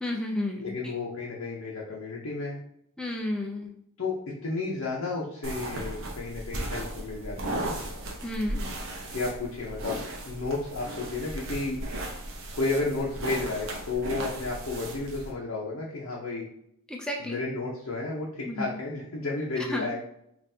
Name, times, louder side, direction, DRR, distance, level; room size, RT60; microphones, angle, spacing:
voice 1, 0.0-0.9 3.0-3.7 8.2-8.6 16.9-17.4 18.5-18.7 19.7-19.9, left 1 dB, 5° left, 0 dB, 0.4 m, -32 dB
voice 2, 0.6-2.6 4.0-7.7 9.1-11.8 12.5-16.5 17.2-20.0, left 3 dB, 65° left, -4 dB, 0.7 m, -32 dB
sound 1, 5.4-15.3, right 1 dB, 60° right, 0.8 m, -36 dB
5.4 x 2.5 x 2.7 m, 0.75 s
head